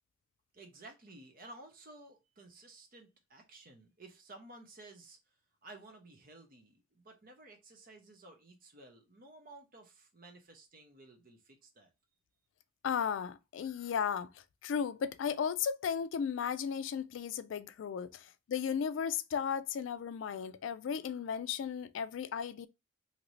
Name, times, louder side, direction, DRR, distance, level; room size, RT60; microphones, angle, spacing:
voice 1, 0.5-5.2 5.6-11.9, right 2 dB, 45° right, 0.8 m, -54 dB
voice 2, 12.8-22.7, left 7 dB, 75° left, 0.3 m, -35 dB
2.8 x 2.6 x 3.1 m
head